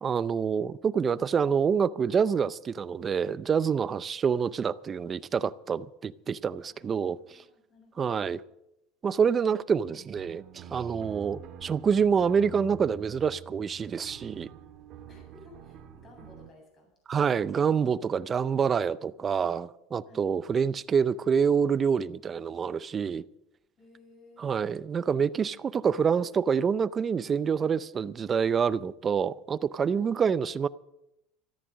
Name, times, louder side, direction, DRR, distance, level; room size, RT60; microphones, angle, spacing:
voice 1, 0.0-7.2 8.0-8.4 9.0-14.5 17.1-23.2 24.4-30.7, right 6 dB, 25° right, 0.5 m, -27 dB
voice 2, 6.7-8.2 15.1-16.9 20.1-20.3 23.8-24.7 29.9-30.1, left 2 dB, 35° left, 7.9 m, -56 dB
sound 1, 9.8-16.5, right 7 dB, 45° right, 1.8 m, -47 dB
13.5 x 13.5 x 6.3 m
supercardioid pair, 135°, 0 cm